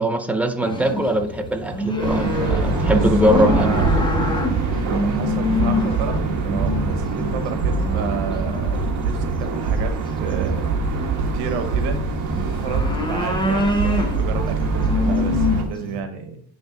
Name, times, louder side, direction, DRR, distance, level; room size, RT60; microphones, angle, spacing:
voice 1, 0.0-4.0, equal, 5° right, 5 dB, 0.4 m, -22 dB
sound 1, 0.6-8.8 9.9-10.5 10.9-16.0, left 2 dB, 10° left, 1.0 m, -25 dB
sound 2, 2.0-15.6, right 3 dB, 50° right, 1.3 m, -23 dB
voice 2, 2.8-3.9 4.9-10.7 11.0-12.0 12.4-16.4, right 6 dB, 85° right, 8 dB, 1.0 m, -32 dB
8.8 x 3.5 x 3.8 m, 0.62 s
cardioid pair, 140°, 39 cm